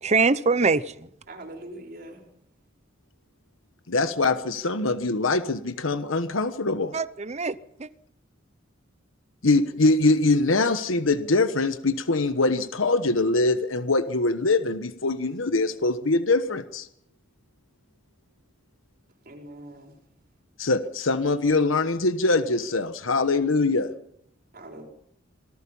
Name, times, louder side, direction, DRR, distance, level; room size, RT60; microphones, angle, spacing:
voice 1, 0.0-1.1 6.9-7.9, right 4 dB, 35° right, 0.7 m, -23 dB
voice 2, 1.3-2.3 19.3-20.0 24.5-24.9, right 1 dB, 50° right, 5.1 m, -42 dB
voice 3, 3.9-6.9 9.4-16.9 20.6-23.9, left 3 dB, 85° left, 1.2 m, -23 dB
26.5 x 19.0 x 5.6 m
head